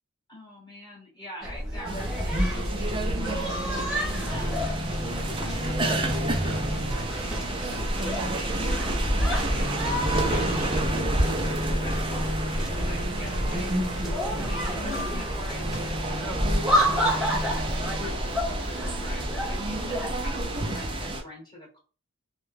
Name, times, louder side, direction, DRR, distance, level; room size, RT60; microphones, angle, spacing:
voice 1, 0.3-4.7 5.2-14.0 14.3-21.8, left 1 dB, 20° left, -3 dB, 1.2 m, -44 dB
sound 1, 1.4-20.5, equal, ahead, 0.8 m, -29 dB
sound 2, 1.8-21.2, right 1 dB, 25° right, 0.4 m, -30 dB
2.8 x 2.2 x 3.3 m, 0.37 s
head